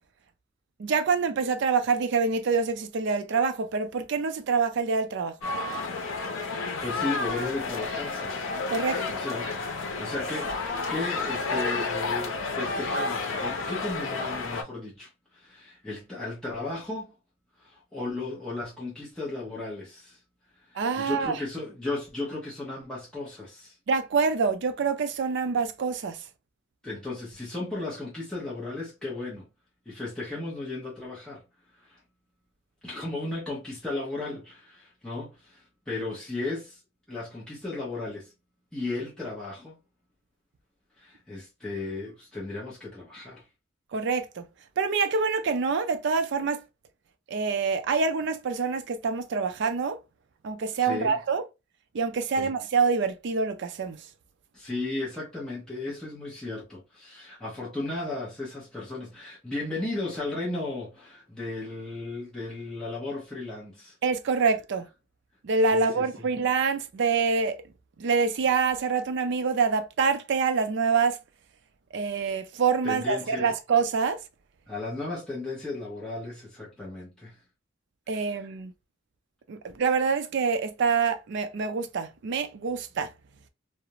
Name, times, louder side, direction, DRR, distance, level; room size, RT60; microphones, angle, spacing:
voice 1, 0.8-5.3 8.7-9.2 20.8-21.4 23.9-26.2 43.9-44.5 44.8-46.6 47.3-50.0 50.4-51.4 51.9-54.0 64.0-64.9 65.4-67.6 68.0-71.2 71.9-74.2 78.1-78.7 79.5-83.1, right 5 dB, 60° right, 0.4 m, -26 dB
sound 1, 5.4-14.6, left 3 dB, 80° left, 0.6 m, -31 dB
voice 2, 6.8-8.4 9.2-17.1 17.6-20.2 20.7-23.7 26.8-29.5 29.9-31.4 31.8-32.0 32.8-36.8 37.1-38.3 38.7-39.8 41.0-43.4 50.8-51.2 52.4-52.5 54.5-63.9 65.7-66.3 72.8-73.5 74.7-77.4, left 2 dB, 5° left, 0.7 m, -35 dB
2.4 x 2.0 x 2.8 m
head